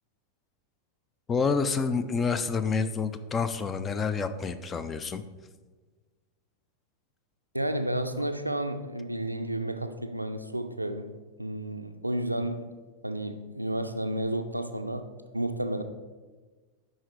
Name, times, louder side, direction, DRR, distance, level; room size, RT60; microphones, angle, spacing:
voice 1, 1.3-5.2, left 5 dB, 20° left, 12 dB, 0.4 m, -28 dB
voice 2, 7.5-11.1 11.4-12.6 13.0-15.1 15.3-15.8, right 1 dB, 85° right, 8 dB, 0.4 m, -31 dB
10.0 x 3.8 x 3.1 m, 1.3 s
figure-of-eight pair, 90°, 0 cm